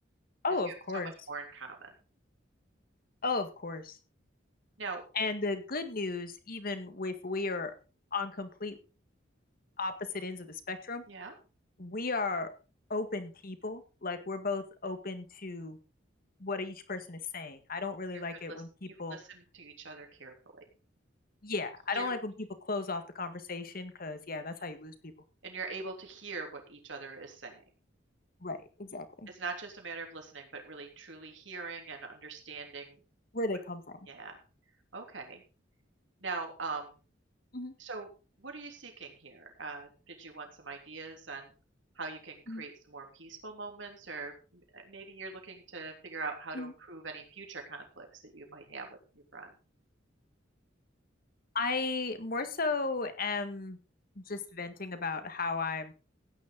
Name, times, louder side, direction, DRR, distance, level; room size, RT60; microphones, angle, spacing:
voice 1, 0.4-1.1 3.2-4.0 5.1-7.7 8.1-8.8 9.8-11.0 11.8-12.5 12.9-15.8 16.4-19.2 21.4-24.9 28.4-29.3 33.3-34.0 37.5-37.7 42.5-42.6 46.5-46.7 51.5-53.8 54.2-55.9, left 3 dB, 50° left, 9 dB, 1.8 m, -35 dB
voice 2, 1.3-1.9 4.8-5.0 11.1-11.3 18.1-18.2 18.5-18.6 18.9-20.3 21.9-22.1 25.4-27.6 29.3-33.0 34.1-34.3 34.9-35.4 36.2-36.9 37.8-38.1 38.4-41.5 42.0-49.0 49.3-49.5, right 4 dB, 80° right, 2 dB, 3.3 m, -42 dB
16.0 x 9.7 x 3.9 m, 0.34 s
head